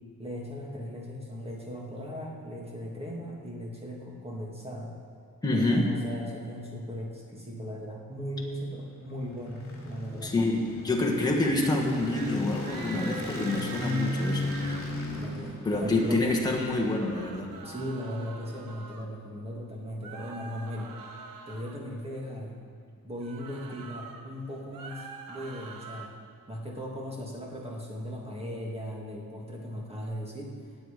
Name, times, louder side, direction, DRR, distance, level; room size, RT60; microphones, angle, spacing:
voice 1, 0.2-4.9 5.5-10.3 15.1-16.3 17.6-20.9 21.5-22.5 23.0-26.1 26.5-30.6, equal, 15° right, -2 dB, 1.8 m, -38 dB
voice 2, 5.4-5.9 10.2-14.6 15.6-17.5, left 2 dB, 10° left, -1 dB, 1.5 m, -27 dB
sound 1, 8.9-17.3, left 1 dB, 35° left, 2.9 m, -35 dB
sound 2, 11.5-11.8 12.0-12.4 12.6-14.8 16.9-19.1 20.0-21.8 23.2-24.2 24.6-26.1, right 4 dB, 65° right, 1.1 m, -44 dB
18.0 x 8.1 x 5.1 m, 2.2 s
wide cardioid pair, 165°, 36 cm